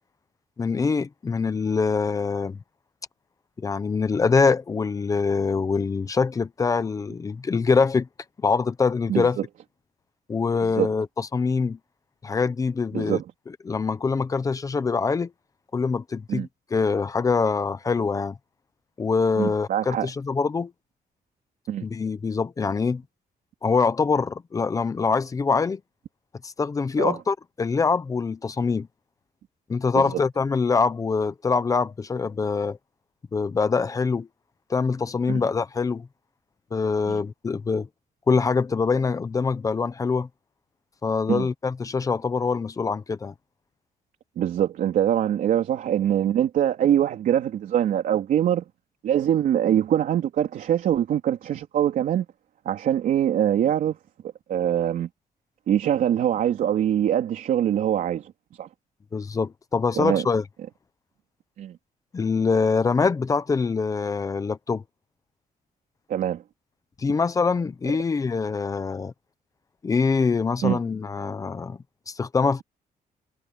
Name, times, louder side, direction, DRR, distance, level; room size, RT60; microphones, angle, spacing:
voice 1, 0.6-2.6 3.6-8.1 8.4-9.4 10.3-11.8 12.2-13.2 13.7-15.3 15.7-18.4 19.0-20.7 21.8-23.0 23.6-25.8 26.4-28.9 29.7-32.8 33.3-34.3 34.7-36.1 36.7-37.9 38.3-40.3 41.0-43.3 59.1-60.4 62.1-64.8 67.0-69.1 69.8-71.8 72.1-72.6, left 4 dB, 20° left, 0.7 m, -24 dB
voice 2, 9.1-9.5 10.8-10.9 12.9-13.2 16.3-16.5 19.4-20.1 21.7-21.9 27.0-27.2 29.9-30.1 35.3-35.4 37.1-37.2 41.3-41.5 44.4-48.6 49.0-52.3 52.7-54.0 54.5-55.1 55.7-58.3 58.6-58.7 60.0-60.3 61.6-61.8 66.1-66.4 70.6-70.8, right 10 dB, 60° right, 3.8 m, -23 dB
cardioid pair, 175°, 16 cm